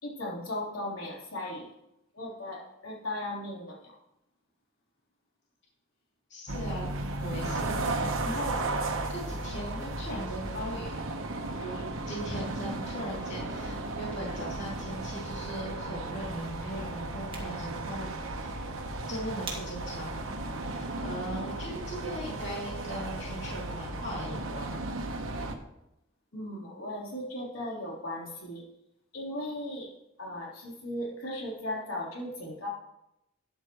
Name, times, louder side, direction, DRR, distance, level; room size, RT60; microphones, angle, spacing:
voice 1, 0.0-1.7 2.1-3.9 26.3-28.6 29.1-29.9 30.2-32.7, left 1 dB, 85° left, -4 dB, 3.7 m, -37 dB
voice 2, 6.3-6.9 7.2-8.6 9.1-11.1 11.5-18.7 19.1-20.1 20.7-24.8, right 1 dB, 55° left, -5 dB, 3.0 m, -39 dB
sound 1, 6.5-25.6, right 2 dB, 80° right, 1.2 m, -35 dB
sound 2, 17.1-22.1, right 4 dB, 25° right, 2.1 m, -49 dB
12.5 x 9.8 x 3.1 m, 0.85 s
head